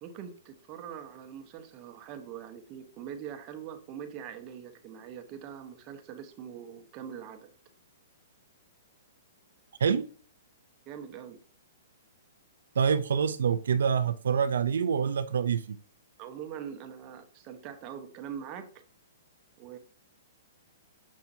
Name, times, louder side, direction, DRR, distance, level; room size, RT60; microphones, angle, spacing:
voice 1, 0.0-7.5 10.9-11.4 16.2-18.7 19.6-19.8, right 8 dB, 30° right, 1.0 m, -43 dB
voice 2, 12.8-15.8, right 7 dB, 80° right, 0.5 m, -26 dB
7.3 x 5.7 x 2.7 m
hypercardioid pair, 155°, 0 cm